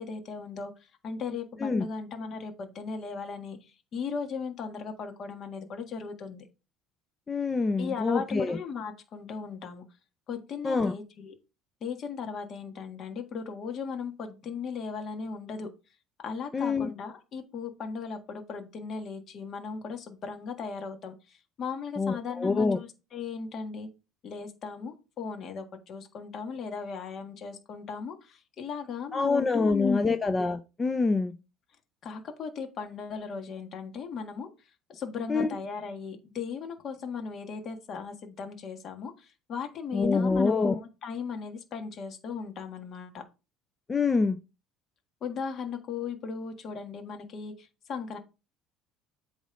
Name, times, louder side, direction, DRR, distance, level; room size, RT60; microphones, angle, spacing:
voice 1, 0.0-6.5 7.8-9.8 10.3-11.3 11.8-15.7 16.2-23.9 24.2-30.1 32.0-34.5 34.9-43.2 45.2-48.2, left 5 dB, 45° left, 1.5 m, -37 dB
voice 2, 7.3-8.6 10.6-10.9 16.5-16.9 22.0-22.8 29.1-31.3 35.3-35.5 39.9-40.7 43.9-44.4, left 4 dB, 20° left, 0.5 m, -25 dB
7.9 x 3.1 x 5.1 m
cardioid pair, 135°, 0 cm